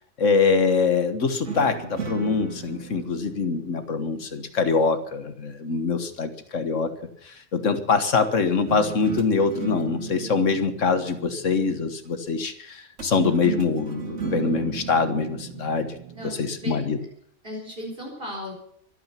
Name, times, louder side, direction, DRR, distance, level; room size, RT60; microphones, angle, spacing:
voice 1, 0.2-6.9 7.2-15.9 16.4-17.0, left 4 dB, 85° left, 9 dB, 1.8 m, -24 dB
sound 1, 1.4-4.8 8.7-12.1 13.0-16.8, right 7 dB, 75° right, 2.2 m, -36 dB
voice 2, 16.1-16.8 17.4-18.5, left 1 dB, 50° right, -2 dB, 4.5 m, -36 dB
24.0 x 9.1 x 5.9 m, 0.65 s
omnidirectional pair, 1.3 m